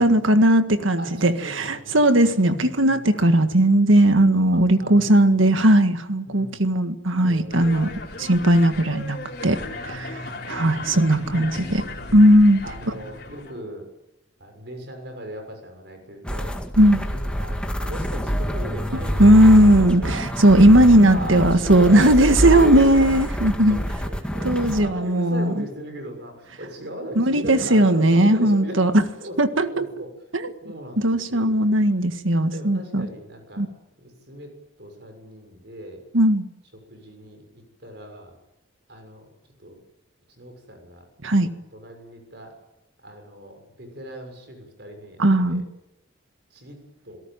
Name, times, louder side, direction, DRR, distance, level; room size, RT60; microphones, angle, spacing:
voice 1, 0.0-7.9 8.2-9.2 9.4-9.6 9.8-10.2 10.5-11.8 12.1-12.6 16.8-17.0 19.2-23.8 24.4-25.5 27.1-29.0 29.4-29.9 30.3-30.5 31.0-33.1 33.6-33.7 36.1-36.4 41.2-41.5 45.2-45.6, right 1 dB, 90° right, 9 dB, 1.8 m, -17 dB
voice 2, 1.0-3.3 4.5-5.6 6.2-6.6 7.2-8.0 9.5-10.2 10.6-11.0 11.5-12.3 12.6-13.9 14.4-16.5 17.0-23.2 23.7-28.8 29.2-30.3 30.6-32.1 32.5-33.7 34.0-34.5 34.8-36.0 36.9-38.4 38.9-39.3 39.6-39.8 40.3-41.1 41.4-42.5 43.0-45.6 46.5-46.8 47.0-47.2, right 1 dB, 55° right, 5 dB, 6.6 m, -38 dB
sound 1, 7.5-13.6, left 2 dB, 50° left, 4.1 m, -36 dB
sound 2, 16.2-24.9, equal, 5° left, 1.9 m, -26 dB
28.0 x 18.0 x 9.1 m, 0.91 s
head